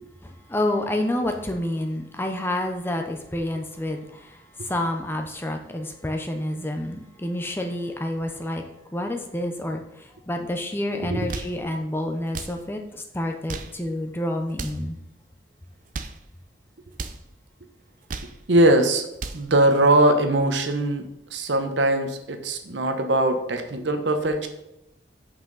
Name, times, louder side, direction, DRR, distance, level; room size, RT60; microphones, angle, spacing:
voice 1, 0.2-8.6 8.9-15.0, left 1 dB, 10° left, 4 dB, 0.6 m, -29 dB
sound 1, 11.1-11.6 12.3-12.6 13.3-13.8 14.5-14.9 15.7-16.2 16.9-17.2 17.9-18.4 19.0-19.5, right 4 dB, 45° right, 0.5 m, -35 dB
voice 2, 18.5-19.0 19.3-21.0 21.3-24.5, right 1 dB, 75° right, 7 dB, 0.9 m, -21 dB
7.9 x 5.7 x 4.0 m, 0.84 s
head